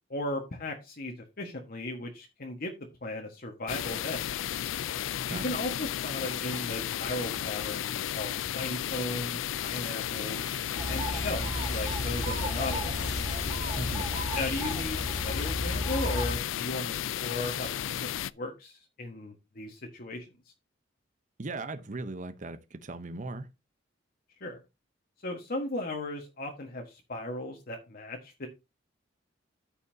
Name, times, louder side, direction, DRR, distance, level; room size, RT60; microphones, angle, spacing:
voice 1, 0.1-4.3 5.3-10.5 10.9-12.9 14.3-20.3 24.4-24.6 25.2-28.5, left 2 dB, 50° left, 1.4 m, -36 dB
sound 1, 3.7-18.3, left 11 dB, 90° left, 0.4 m, -34 dB
sound 2, 9.9-15.8, right 8 dB, 90° right, 1.4 m, -50 dB
sound 3, 10.8-16.3, equal, 20° right, 2.9 m, -33 dB
voice 2, 21.4-23.5, right 2 dB, 40° right, 0.8 m, -38 dB
13.5 x 5.5 x 2.7 m
head